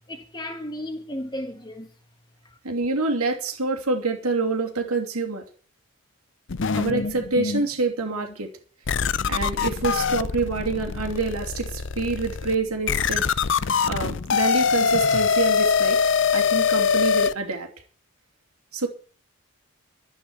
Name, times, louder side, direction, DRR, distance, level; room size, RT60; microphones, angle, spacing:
voice 1, 0.1-1.9 2.4-2.6, left 1 dB, 20° left, 1.5 m, -34 dB
voice 2, 2.6-5.4 6.7-8.5 9.3-13.2 13.5-16.0 16.3-17.7 18.7-18.9, right 3 dB, 85° right, 2.8 m, -27 dB
sound 1, 6.5-7.7 8.2-8.3 8.9-17.3, left 6 dB, 55° left, 0.6 m, -23 dB
12.5 x 9.4 x 8.0 m
head